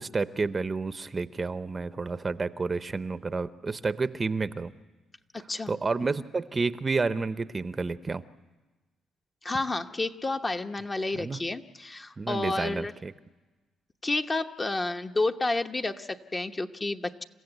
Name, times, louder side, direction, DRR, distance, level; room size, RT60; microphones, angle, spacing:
voice 1, 0.0-4.7 5.7-8.2 11.1-11.4 12.2-13.1, right 4 dB, 30° right, 13 dB, 0.7 m, -30 dB
voice 2, 9.4-12.9 14.0-17.2, left 2 dB, 25° left, 6 dB, 1.0 m, -30 dB
29.0 x 15.5 x 8.0 m, 1.2 s
cardioid pair, 90°, 0 cm